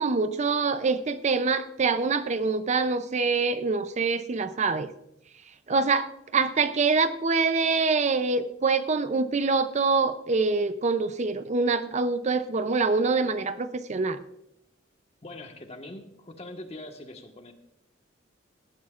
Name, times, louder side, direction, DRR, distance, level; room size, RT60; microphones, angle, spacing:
voice 1, 0.0-4.9 5.7-14.2, right 4 dB, 35° right, 11 dB, 0.5 m, -25 dB
voice 2, 15.2-17.5, left 1 dB, 35° left, 4 dB, 1.4 m, -42 dB
17.5 x 12.5 x 2.5 m, 0.83 s
head